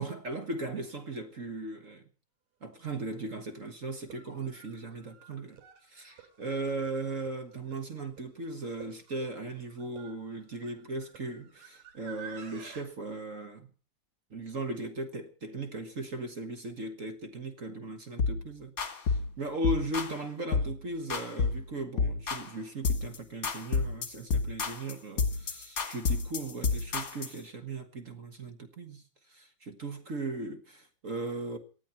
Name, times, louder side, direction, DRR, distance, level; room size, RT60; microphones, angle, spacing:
voice 1, 0.0-2.0 2.6-5.6 5.9-13.7 14.3-31.6, right 2 dB, 40° right, 1.2 m, -37 dB
sound 1, 2.8-2.9 3.9-12.8, right 8 dB, 70° right, 4.1 m, -52 dB
sound 2, 18.2-18.4 18.8-19.3 19.6-20.2 20.5-20.8 21.1-21.6 22.0-22.5 22.8-23.2 23.4-27.4, left 4 dB, 30° left, 2.1 m, -30 dB
18.5 x 13.0 x 5.9 m
omnidirectional pair, 3.4 m